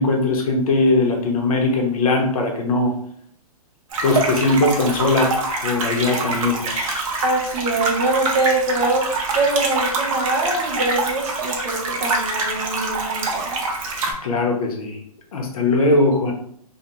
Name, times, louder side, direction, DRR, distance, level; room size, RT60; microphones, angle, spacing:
voice 1, 0.0-2.9 4.0-5.3 5.6-7.0 14.2-15.0 15.3-16.3, left 2 dB, 70° left, 2 dB, 0.7 m, -20 dB
sound 1, 3.9-14.1, right 3 dB, 60° right, 0.6 m, -25 dB
voice 2, 7.2-9.1 9.3-13.6, right 2 dB, 25° right, -1 dB, 0.4 m, -23 dB
2.3 x 2.2 x 2.8 m, 0.66 s
hypercardioid pair, 160°, 19 cm